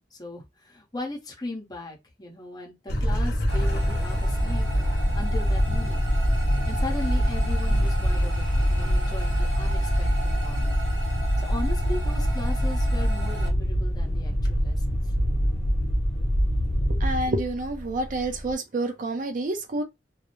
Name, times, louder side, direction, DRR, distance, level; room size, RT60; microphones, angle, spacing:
voice 1, 0.0-4.7 5.1-6.1 6.7-10.8 11.4-15.1, left 2 dB, 25° left, 0.9 m, -38 dB
sound 1, 2.9-17.3, equal, 65° left, 0.7 m, -24 dB
sound 2, 3.5-13.5, right 1 dB, 70° right, 1.0 m, -38 dB
sound 3, 4.5-18.5, equal, ahead, 0.6 m, -41 dB
voice 2, 17.0-19.8, right 2 dB, 50° right, 0.5 m, -28 dB
2.3 x 2.0 x 3.0 m
head